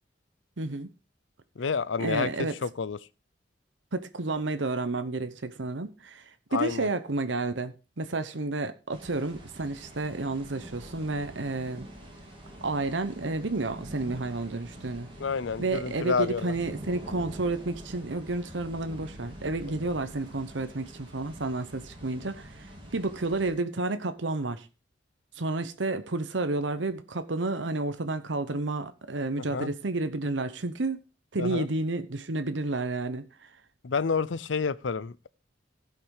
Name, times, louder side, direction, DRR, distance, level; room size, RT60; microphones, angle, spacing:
voice 1, 0.6-0.9 2.0-2.5 3.9-6.2 6.5-11.9 12.6-15.1 15.6-22.5 22.9-24.7 25.4-31.0 31.3-33.3, right 2 dB, 80° right, 1.0 m, -31 dB
voice 2, 1.6-3.0 6.5-6.9 15.2-16.5 29.5-29.7 31.4-31.7 33.8-35.3, left 5 dB, 90° left, 0.6 m, -29 dB
sound 1, 8.9-23.5, right 1 dB, 30° right, 3.6 m, -45 dB
15.5 x 5.9 x 4.8 m
head